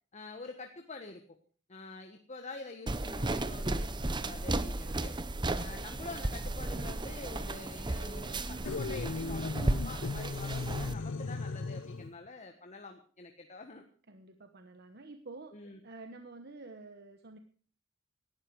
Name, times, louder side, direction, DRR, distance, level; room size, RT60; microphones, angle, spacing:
voice 1, 0.1-1.2 1.7-5.2 5.6-13.8 15.5-15.8, left 3 dB, 35° left, 5 dB, 1.4 m, -46 dB
sound 1, 2.9-10.9, right 2 dB, 25° right, 0.9 m, -34 dB
sound 2, 8.7-12.2, left 3 dB, 70° left, 0.6 m, -37 dB
voice 2, 14.1-17.4, right 3 dB, 55° right, 7 dB, 1.2 m, -49 dB
18.0 x 12.0 x 4.8 m, 0.42 s
head